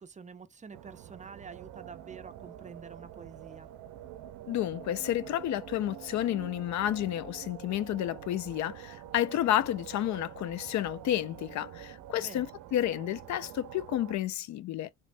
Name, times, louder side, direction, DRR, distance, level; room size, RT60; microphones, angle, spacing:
voice 1, 0.0-3.7 12.2-12.5, right 5 dB, 25° right, 0.4 m, -48 dB
sound 1, 0.7-14.2, right 12 dB, 80° right, 0.5 m, -46 dB
voice 2, 4.5-14.9, left 12 dB, 70° left, 0.4 m, -31 dB
3.3 x 3.0 x 2.5 m
cardioid pair, 90°, 30 cm